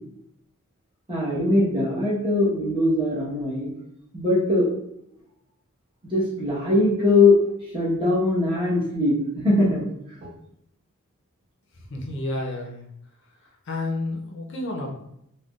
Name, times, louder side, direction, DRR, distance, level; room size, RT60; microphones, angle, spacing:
voice 1, 1.1-3.7 4.1-4.7 6.1-7.4 7.7-9.8 10.2-10.3, left 2 dB, 25° right, -6 dB, 1.1 m, -21 dB
voice 2, 11.7-12.9 13.4-15.0, left 2 dB, 55° left, -1 dB, 0.5 m, -31 dB
3.7 x 2.2 x 2.3 m, 0.76 s
head